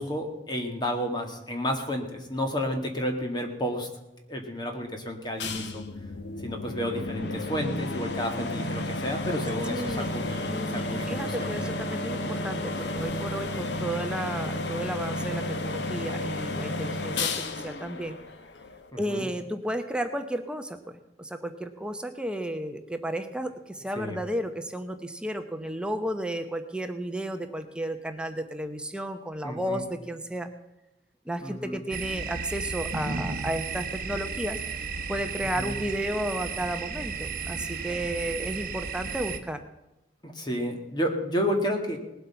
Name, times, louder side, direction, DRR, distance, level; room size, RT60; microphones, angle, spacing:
voice 1, 0.0-3.9 4.3-5.8 6.4-11.5 18.9-19.3 24.0-24.2 29.4-29.8 31.4-31.8 35.6-35.7 40.2-42.0, equal, 25° left, 4 dB, 1.9 m, -31 dB
sound 1, 5.4-18.9, left 2 dB, 75° left, 1.0 m, -32 dB
voice 2, 9.7-10.1 10.5-18.2 19.0-20.8 21.2-30.5 31.3-34.6 35.1-39.6, right 1 dB, 5° right, 7 dB, 0.8 m, -33 dB
sound 2, 31.9-39.4, right 5 dB, 50° right, 1.1 m, -34 dB
19.0 x 8.0 x 5.7 m, 0.97 s
head